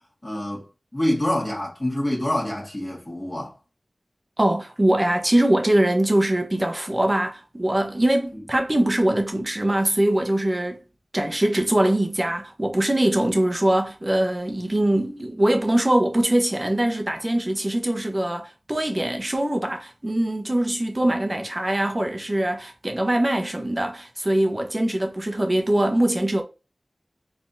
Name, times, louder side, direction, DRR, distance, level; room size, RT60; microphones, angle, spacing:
voice 1, 0.2-0.7 0.9-3.5 8.3-8.4 21.0-21.1, left 1 dB, 30° left, 1.9 m, -26 dB
voice 2, 4.4-10.8 11.1-26.4, right 1 dB, 35° right, 1.1 m, -22 dB
4.1 x 3.6 x 2.7 m
wide cardioid pair, 40°, 0 cm